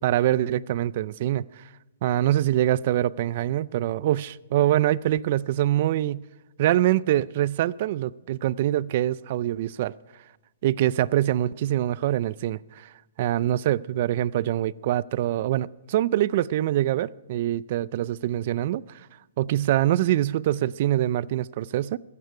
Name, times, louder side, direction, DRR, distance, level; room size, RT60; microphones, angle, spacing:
voice 1, 0.0-1.4 2.0-6.2 6.6-9.9 10.6-12.9 13.2-18.8 19.4-22.0, right 13 dB, 45° right, 0.4 m, -24 dB
15.5 x 13.5 x 4.8 m
hypercardioid pair, 155°, 0 cm